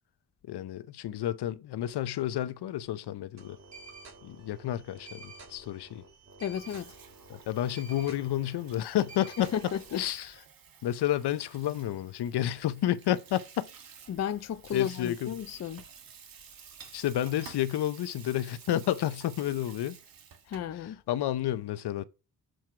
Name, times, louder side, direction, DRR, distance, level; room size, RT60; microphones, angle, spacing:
voice 1, 0.4-3.6 4.2-6.0 7.3-9.5 9.9-10.4 10.8-13.7 14.7-15.3 16.9-20.0 20.7-22.0, left 12 dB, 85° left, 0.7 m, -31 dB
sound 1, 3.4-9.9, right 3 dB, 45° right, 3.3 m, -50 dB
voice 2, 6.4-6.9 9.4-10.0 14.1-15.8 20.5-21.0, left 9 dB, 45° left, 0.5 m, -33 dB
Water tap faucet / Sink (filling or washing), 6.4-20.8, right 7 dB, 60° right, 1.6 m, -52 dB
7.9 x 4.6 x 4.7 m
wide cardioid pair, 125°, 39 cm